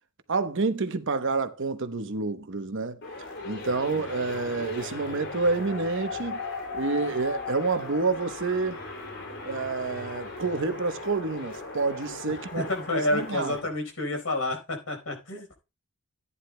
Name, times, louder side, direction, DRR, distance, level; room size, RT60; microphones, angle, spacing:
voice 1, 0.3-3.0 3.4-6.4 6.7-8.8 9.4-12.7 12.9-13.6, right 3 dB, 60° right, 0.9 m, -28 dB
sound 1, 3.0-13.6, left 3 dB, 55° left, 2.8 m, -38 dB
voice 2, 12.3-15.6, left 2 dB, 80° left, 4.4 m, -30 dB
14.5 x 9.7 x 2.2 m
head